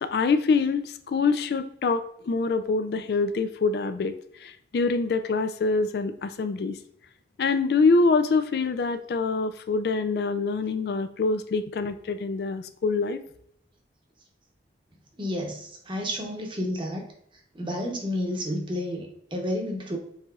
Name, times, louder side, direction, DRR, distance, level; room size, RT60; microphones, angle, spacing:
voice 1, 0.0-4.1 4.4-6.8 7.4-13.2, left 4 dB, 60° left, 10 dB, 0.3 m, -25 dB
voice 2, 15.2-17.0 17.5-20.0, left 1 dB, 25° right, 1 dB, 0.8 m, -31 dB
4.8 x 4.1 x 2.4 m, 0.70 s
head